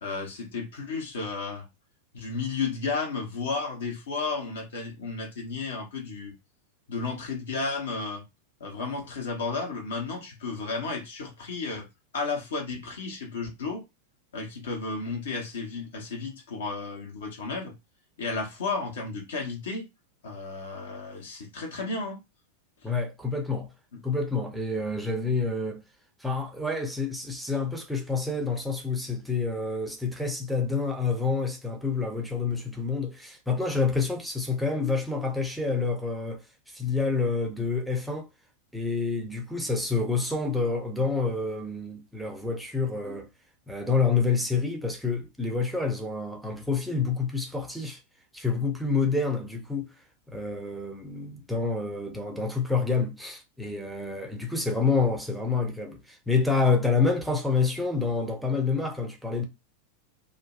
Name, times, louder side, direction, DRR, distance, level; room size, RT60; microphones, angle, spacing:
voice 1, 0.0-1.7 2.1-6.3 6.9-8.2 8.6-11.9 12.1-13.8 14.3-17.7 18.2-19.8 20.2-22.2, left 4 dB, 60° left, 0.9 m, -33 dB
voice 2, 22.8-23.7 24.0-25.8 26.2-38.3 38.7-43.3 43.7-48.0 48.3-49.9 50.3-59.5, left 4 dB, ahead, 0.5 m, -28 dB
2.5 x 2.1 x 2.4 m
figure-of-eight pair, 90°, 0 cm